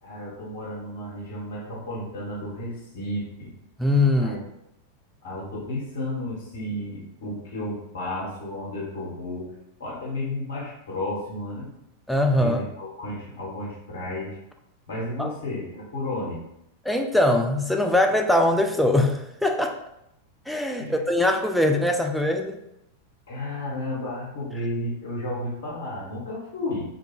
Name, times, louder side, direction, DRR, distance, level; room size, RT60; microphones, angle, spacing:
voice 1, 0.0-3.5 4.2-4.4 5.2-9.5 9.8-11.7 12.3-14.4 14.9-16.4 20.8-21.0 23.3-26.8, left 1 dB, 55° left, -5 dB, 1.1 m, -32 dB
voice 2, 3.8-4.4 12.1-12.6 15.2-15.3 16.8-19.8 20.5-22.6, left 1 dB, ahead, 3 dB, 0.3 m, -22 dB
2.4 x 2.2 x 3.1 m, 0.82 s
figure-of-eight pair, 90°, 0 cm